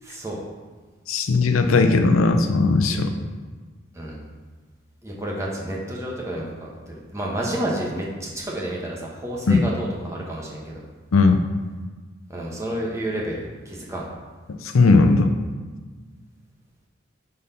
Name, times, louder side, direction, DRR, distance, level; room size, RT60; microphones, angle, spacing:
voice 1, 0.0-0.4 2.9-3.1 3.9-4.2 5.0-10.8 12.3-14.0, right 1 dB, 15° right, -3 dB, 1.0 m, -30 dB
voice 2, 1.1-3.1 9.5-9.6 11.1-11.4 14.6-15.3, left 3 dB, 80° left, 6 dB, 0.5 m, -17 dB
5.2 x 4.0 x 5.5 m, 1.4 s
head